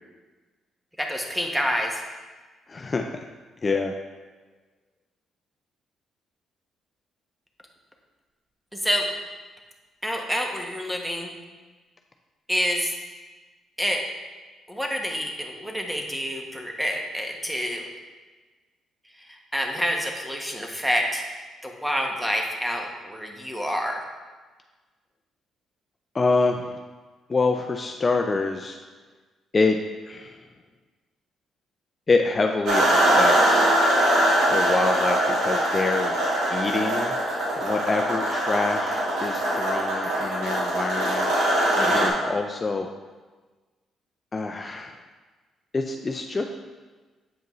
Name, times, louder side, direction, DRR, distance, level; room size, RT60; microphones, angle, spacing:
voice 1, 1.0-2.0 8.7-9.1 10.0-11.3 12.5-12.9 13.8-14.0 14.7-17.9 19.2-21.2 21.6-24.0 41.8-42.1, equal, 5° right, 1 dB, 1.0 m, -28 dB
voice 2, 2.7-3.2 3.6-3.9 26.1-26.8 27.3-28.8 29.5-29.8 30.1-30.4 32.1-33.7 34.5-36.2 36.5-37.1 37.6-41.3 41.9-42.9 44.3-45.0 45.7-46.4, left 3 dB, 30° left, 4 dB, 0.4 m, -26 dB
sound 1, 32.7-42.1, right 1 dB, 85° right, 1.8 m, -22 dB
7.9 x 5.1 x 3.0 m, 1.3 s
cardioid pair, 90°, 0 cm